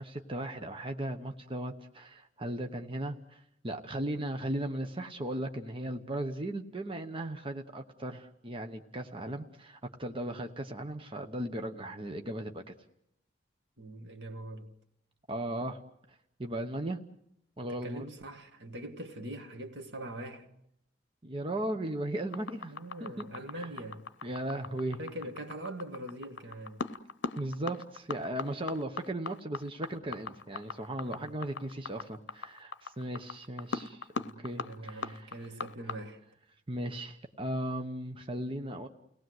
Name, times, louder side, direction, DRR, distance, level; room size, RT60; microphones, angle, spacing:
voice 1, 0.0-12.7 15.3-15.8 16.4-17.0 17.6-18.1 21.2-22.7 23.0-23.3 23.5-23.7 24.2-25.0 27.4-34.1 34.4-35.2 36.7-38.9, right 1 dB, 30° right, 1.0 m, -37 dB
voice 2, 13.8-14.7 17.6-20.5 22.7-24.0 25.0-26.8 31.0-31.3 34.2-36.2, right 1 dB, 70° right, 1.9 m, -43 dB
sound 1, 22.3-35.9, left 4 dB, 75° left, 0.9 m, -39 dB
30.0 x 18.5 x 7.9 m
head